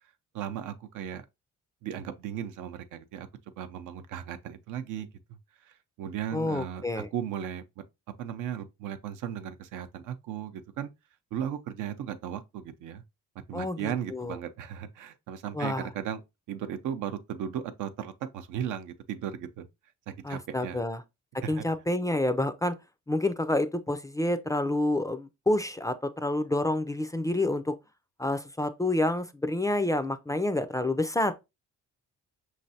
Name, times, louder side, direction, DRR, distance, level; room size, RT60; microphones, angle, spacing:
voice 1, 0.3-1.2 1.8-3.3 3.6-5.1 5.6-7.8 8.2-10.9 11.3-13.0 13.5-16.2 16.5-19.7 20.1-20.8 21.4-21.7, right 9 dB, 80° right, 0.6 m, -36 dB
voice 2, 6.3-7.1 13.5-14.4 15.5-15.9 20.2-21.0 21.5-22.7 23.1-27.7 28.2-31.3, left 1 dB, 10° left, 0.3 m, -28 dB
5.4 x 3.2 x 2.7 m
cardioid pair, 90°, 30 cm